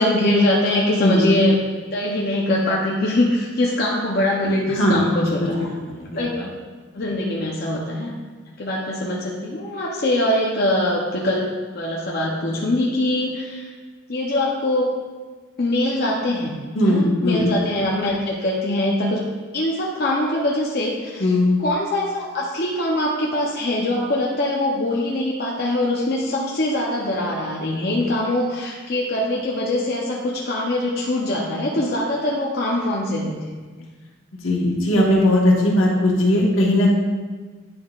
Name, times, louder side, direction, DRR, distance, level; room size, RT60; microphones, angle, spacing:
voice 1, 0.0-1.6 1.9-5.7 6.2-6.5 6.9-8.1 8.6-11.5 11.7-13.7 14.1-14.9 15.6-19.2 19.5-21.3 21.6-33.9, left 1 dB, 50° left, -3 dB, 0.7 m, -23 dB
voice 2, 5.7-6.2 16.7-17.5 21.2-21.5 34.4-36.9, left 1 dB, 80° left, -2 dB, 1.4 m, -18 dB
9.5 x 5.3 x 2.4 m, 1.4 s
head